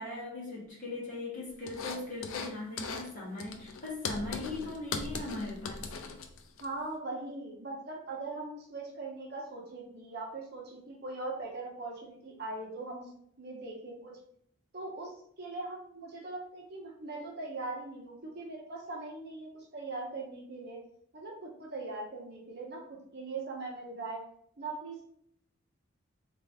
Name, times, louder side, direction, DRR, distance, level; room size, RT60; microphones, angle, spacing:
voice 1, 0.0-5.9, left 2 dB, 40° left, -5 dB, 1.3 m, -39 dB
sound 1, 1.7-2.5 2.8-3.1 3.4-6.7, left 4 dB, 75° left, 0.4 m, -39 dB
voice 2, 6.6-13.1 13.4-14.1 14.7-20.8 21.1-24.2 24.6-25.1, right 3 dB, 50° right, -2 dB, 0.9 m, -40 dB
3.3 x 2.6 x 3.4 m, 0.67 s
head